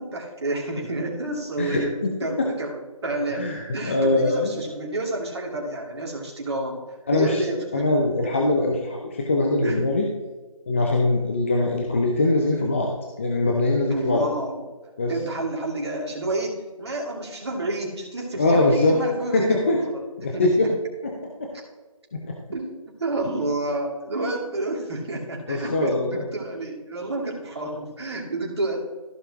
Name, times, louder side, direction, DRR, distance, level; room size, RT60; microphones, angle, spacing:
voice 1, 0.0-1.9 2.2-3.5 3.7-6.8 7.1-7.9 9.6-9.8 13.9-14.6 15.1-20.0 20.3-20.7 21.5-21.6 22.5-28.8, right 2 dB, 50° right, -1 dB, 2.7 m, -29 dB
voice 2, 1.6-2.1 2.4-2.5 3.3-4.5 7.1-7.4 7.7-10.1 10.7-12.9 13.2-14.3 15.0-15.1 18.4-19.0 19.3-19.8 20.2-20.7 21.0-21.1 21.4-21.5 22.1-22.4 25.5-26.2, left 2 dB, 20° left, 0 dB, 0.7 m, -22 dB
15.0 x 5.6 x 2.9 m, 1.3 s
figure-of-eight pair, 165°, 18 cm